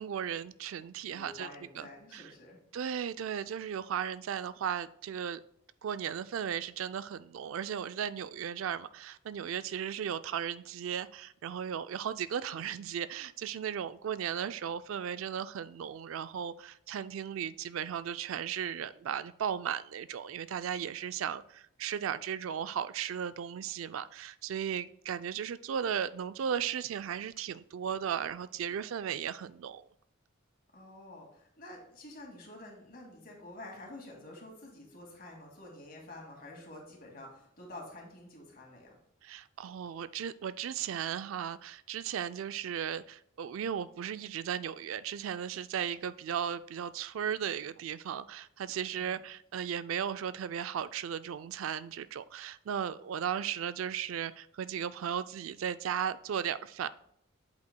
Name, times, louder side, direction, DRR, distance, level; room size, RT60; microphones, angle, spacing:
voice 1, 0.0-1.5 1.8-1.9 2.1-2.2 2.7-5.4 5.8-29.9 39.2-56.9, right 8 dB, 75° right, 14 dB, 0.3 m, -36 dB
voice 2, 1.1-2.6 30.7-39.0 48.9-49.2, left 1 dB, 45° left, 0 dB, 2.2 m, -49 dB
8.2 x 8.0 x 2.2 m, 0.72 s
head